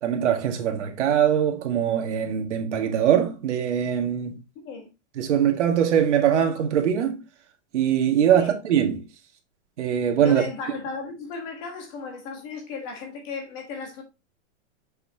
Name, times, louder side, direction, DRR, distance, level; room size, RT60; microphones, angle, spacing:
voice 1, 0.0-4.4 5.2-7.2 7.7-9.0 9.8-10.4, right 9 dB, 75° right, 1.9 m, -22 dB
voice 2, 10.2-14.0, left 5 dB, 25° left, 1.2 m, -35 dB
6.7 x 5.7 x 2.7 m
supercardioid pair, 180°, 36 cm